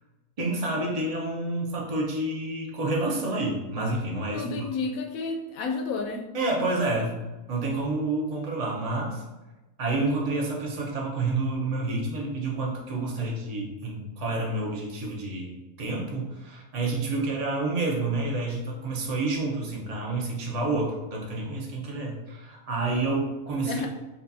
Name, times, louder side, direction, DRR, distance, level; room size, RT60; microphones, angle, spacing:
voice 1, 0.4-4.7 6.3-7.2 7.5-9.2 9.8-23.8, right 2 dB, 30° right, -2 dB, 0.8 m, -29 dB
voice 2, 4.3-6.3 23.6-23.9, left 4 dB, 75° left, 3 dB, 1.0 m, -31 dB
7.1 x 2.5 x 2.7 m, 1.1 s
omnidirectional pair, 1.6 m